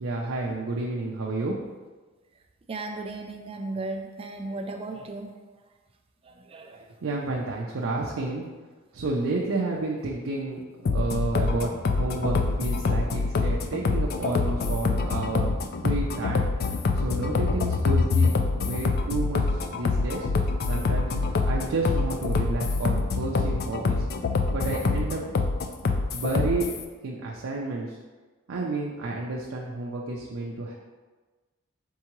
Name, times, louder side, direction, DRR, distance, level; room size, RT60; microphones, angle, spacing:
voice 1, 0.0-1.6 7.0-8.4 8.9-15.5 15.8-16.5 16.9-19.4 19.7-20.3 20.7-21.1 21.5-24.0 24.5-25.2 25.8-26.7 27.0-28.0 28.5-30.7, right 3 dB, 90° right, -2 dB, 0.5 m, -30 dB
voice 2, 2.7-5.3 6.3-6.8, right 2 dB, 30° right, 3 dB, 0.4 m, -35 dB
sound 1, 10.9-26.8, left 4 dB, 50° left, 0.3 m, -25 dB
4.6 x 3.6 x 3.0 m, 1.3 s
head